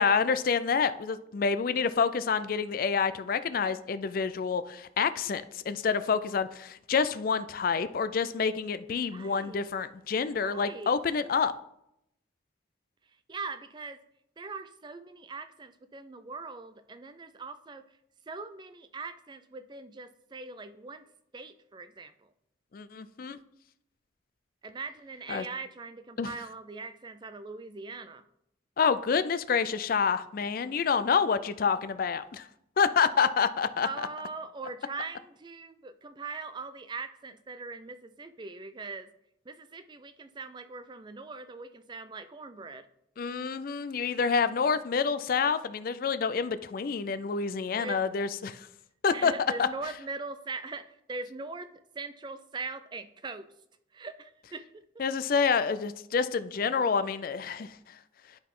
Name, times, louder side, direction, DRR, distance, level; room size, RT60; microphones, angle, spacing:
voice 1, 0.0-11.5 22.7-23.4 25.3-25.4 26.2-26.3 28.8-32.5 32.8-34.1 43.2-48.7 49.0-49.3 49.6-49.7 55.0-58.0, left 5 dB, 50° left, 13 dB, 0.4 m, -28 dB
voice 2, 9.1-9.7 10.4-10.9 13.3-14.0 14.4-17.8 18.3-21.0 21.3-22.3 24.6-28.2 33.8-39.1 39.5-42.9 47.8-48.0 49.1-51.7 51.9-53.5 53.9-54.8, right 3 dB, 25° right, 10 dB, 0.4 m, -41 dB
11.0 x 4.0 x 3.7 m, 0.78 s
head